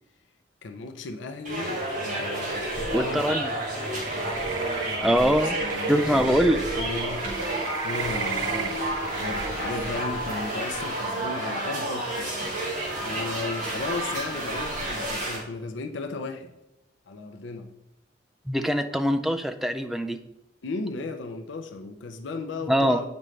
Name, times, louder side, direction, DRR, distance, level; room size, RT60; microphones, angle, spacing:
voice 1, 0.6-3.4 4.8-16.5 17.1-17.7 20.6-23.1, left 3 dB, 85° left, 6 dB, 0.6 m, -36 dB
sound 1, 1.4-15.4, right 1 dB, 45° right, 2.1 m, -30 dB
voice 2, 2.9-3.6 5.0-5.6 5.9-6.6 18.5-20.2 22.7-23.0, equal, ahead, 7 dB, 0.3 m, -23 dB
sound 2, 4.0-9.5, right 7 dB, 85° right, 0.5 m, -36 dB
8.7 x 5.2 x 3.2 m, 0.93 s
head